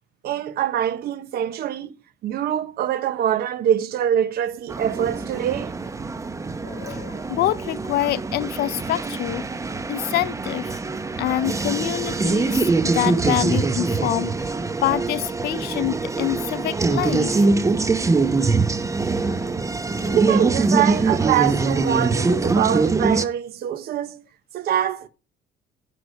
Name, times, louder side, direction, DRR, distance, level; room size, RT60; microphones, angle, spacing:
voice 1, 0.2-1.9 2.2-5.7 20.1-24.2 24.5-25.1, right 10 dB, 65° right, 1.1 m, -24 dB
sound 1, 4.7-23.3, right 3 dB, 20° right, 0.8 m, -23 dB
voice 2, 6.6-9.4 9.9-10.8 11.2-17.5 19.2-19.5 20.0-20.2, left 15 dB, 70° left, 0.5 m, -26 dB
9.7 x 7.2 x 5.3 m
cardioid pair, 110°, 17 cm